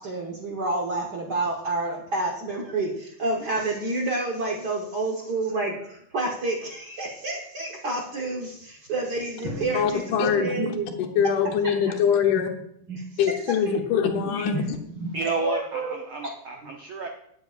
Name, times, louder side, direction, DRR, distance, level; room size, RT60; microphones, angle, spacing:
voice 1, 0.0-10.9 11.4-11.7 12.3-12.4 12.9-13.0 13.7-13.8 14.1-14.2 14.5-14.6 14.9-15.9, right 2 dB, 65° right, 0 dB, 1.0 m, -29 dB
Drum, 9.4-11.6, equal, 25° right, 5.5 m, -39 dB
voice 2, 9.7-10.4 11.2-12.5 13.2-14.8, left 8 dB, 80° left, 5 dB, 2.4 m, -23 dB
voice 3, 15.1-17.1, right 4 dB, 85° right, 2 dB, 1.1 m, -31 dB
18.5 x 8.2 x 2.5 m, 0.71 s
omnidirectional pair, 3.6 m